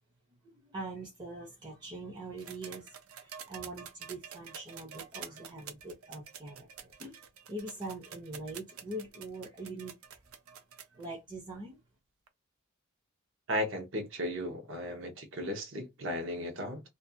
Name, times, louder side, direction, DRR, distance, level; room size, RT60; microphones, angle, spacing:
voice 1, 0.4-7.2 7.5-10.2 10.9-11.8, right 2 dB, 20° right, 0.5 m, -43 dB
sound 1, 2.4-11.1 12.3-12.4, right 8 dB, 85° right, 0.5 m, -48 dB
voice 2, 13.5-16.8, equal, 60° right, 0.8 m, -35 dB
2.5 x 2.3 x 2.6 m
head